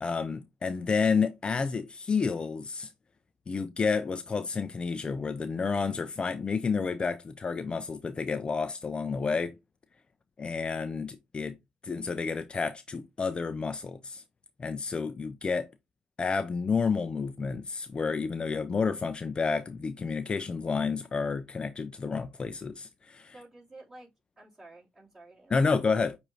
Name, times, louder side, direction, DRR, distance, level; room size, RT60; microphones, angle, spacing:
voice 1, 0.0-2.9 3.5-9.5 10.4-11.6 11.8-14.2 14.6-15.7 16.2-23.3 25.5-26.2, left 5 dB, 35° left, 0.4 m, -30 dB
voice 2, 23.3-24.1 24.4-25.6, right 2 dB, 20° right, 2.6 m, -51 dB
6.4 x 2.6 x 3.0 m
supercardioid pair, 70°, 3 cm